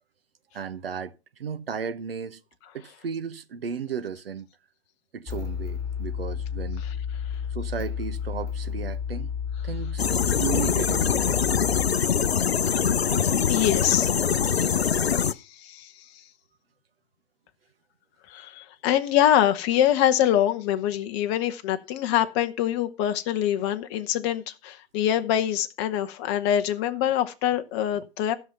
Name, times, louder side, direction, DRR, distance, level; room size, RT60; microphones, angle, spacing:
voice 1, 0.5-1.1 1.4-2.4 2.7-4.5 5.1-6.9 7.5-9.3 9.6-11.4, right 7 dB, 70° right, 0.9 m, -34 dB
sound 1, 5.3-11.9, left 7 dB, 10° left, 3.5 m, -31 dB
sound 2, 10.0-15.3, left 7 dB, 80° left, 0.6 m, -23 dB
voice 2, 13.2-14.1 14.6-14.7 15.0-15.9 18.3-28.3, left 11 dB, 30° left, 0.7 m, -25 dB
13.0 x 5.9 x 5.6 m
figure-of-eight pair, 115°, 31 cm